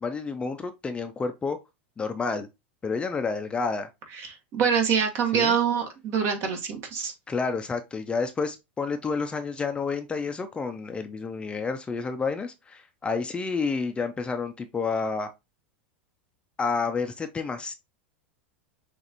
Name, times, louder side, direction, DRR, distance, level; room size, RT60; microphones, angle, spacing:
voice 1, 0.0-1.6 2.0-2.5 2.8-3.9 5.3-5.5 7.3-15.3 16.6-17.7, left 4 dB, 15° left, 0.5 m, -30 dB
voice 2, 4.2-7.1, right 7 dB, 45° right, 1.5 m, -25 dB
6.3 x 2.5 x 2.9 m
hypercardioid pair, 105°, 6 cm